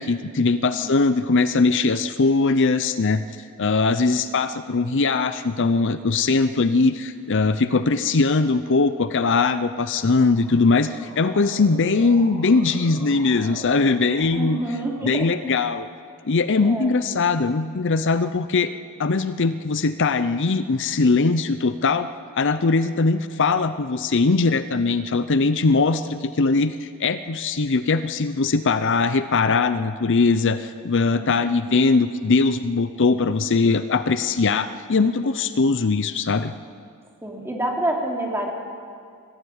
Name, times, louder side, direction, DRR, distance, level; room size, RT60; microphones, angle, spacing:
voice 1, 0.0-3.2 3.6-14.6 15.0-15.9 16.2-18.7 19.0-22.1 22.3-36.5, left 4 dB, 55° left, 12 dB, 0.7 m, -21 dB
Motor vehicle (road) / Siren, 9.7-15.6, right 1 dB, 55° right, 6.0 m, -43 dB
voice 2, 14.3-15.3 16.6-16.9 31.1-31.6 37.2-38.5, right 1 dB, 10° right, -1 dB, 3.1 m, -28 dB
21.5 x 15.0 x 9.7 m, 2.2 s
head